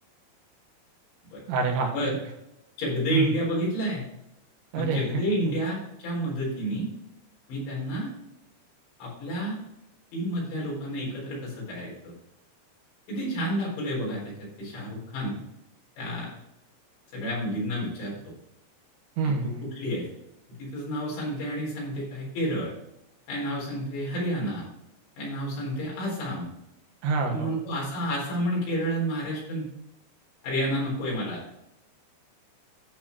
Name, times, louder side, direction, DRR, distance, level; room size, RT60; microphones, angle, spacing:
voice 1, 1.5-1.9 3.1-3.3 4.7-5.3 19.2-19.6 27.0-27.6, right 4 dB, 85° right, 1 dB, 3.7 m, -26 dB
voice 2, 2.8-4.1 4.7-6.9 7.5-8.1 9.0-9.6 10.1-12.1 13.1-15.4 16.0-16.3 17.1-18.1 19.2-20.1 20.5-22.7 23.3-24.7 25.2-26.5 27.2-29.7 30.4-31.4, equal, 80° left, -5 dB, 6.4 m, -30 dB
12.5 x 4.5 x 4.6 m, 0.84 s
omnidirectional pair, 5.1 m